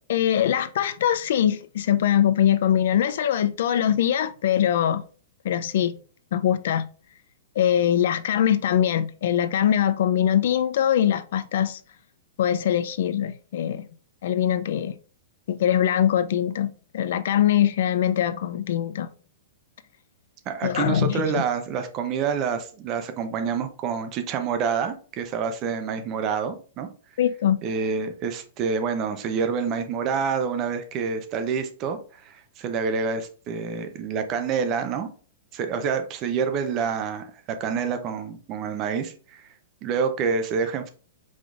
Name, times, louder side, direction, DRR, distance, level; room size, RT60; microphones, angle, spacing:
voice 1, 0.1-5.0 5.4-6.0 6.3-6.9 7.6-11.8 12.4-13.9 14.2-15.0 15.5-19.1 20.6-21.4 27.2-27.6, left 10 dB, 60° left, 0.4 m, -22 dB
voice 2, 20.5-26.9 27.6-35.1 35.5-39.4 39.8-40.9, right 6 dB, 25° right, 0.6 m, -27 dB
4.9 x 3.8 x 2.4 m
supercardioid pair, 170°, 0 cm